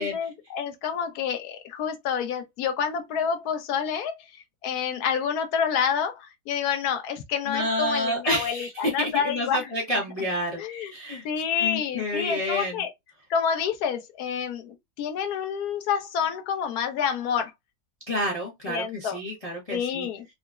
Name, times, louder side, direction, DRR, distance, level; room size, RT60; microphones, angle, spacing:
voice 1, 0.0-9.7 10.6-10.9 11.2-12.9 13.3-17.5 18.7-19.2 19.7-20.2, left 7 dB, 75° left, 1.1 m, -28 dB
voice 2, 7.5-11.2 11.6-12.8 18.1-20.1, left 1 dB, 30° left, 0.7 m, -29 dB
3.8 x 2.0 x 2.3 m
omnidirectional pair, 1.7 m